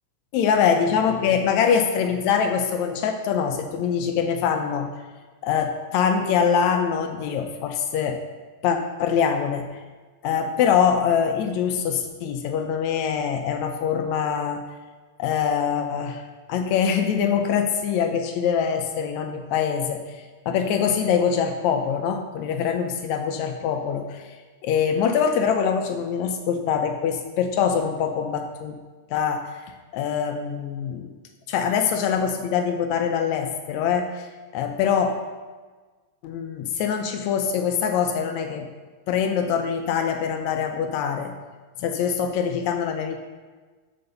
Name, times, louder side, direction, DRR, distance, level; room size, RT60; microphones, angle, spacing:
voice 1, 0.3-4.9 5.4-8.2 8.6-9.6 10.2-14.6 15.2-16.2 16.5-24.3 24.6-28.8 29.1-29.5 29.9-31.1 31.5-34.3 34.5-35.1 36.2-38.7 39.1-41.3 41.8-43.2, left 7 dB, 80° left, 5 dB, 1.9 m, -24 dB
6.7 x 6.7 x 6.6 m, 1.3 s
omnidirectional pair, 3.4 m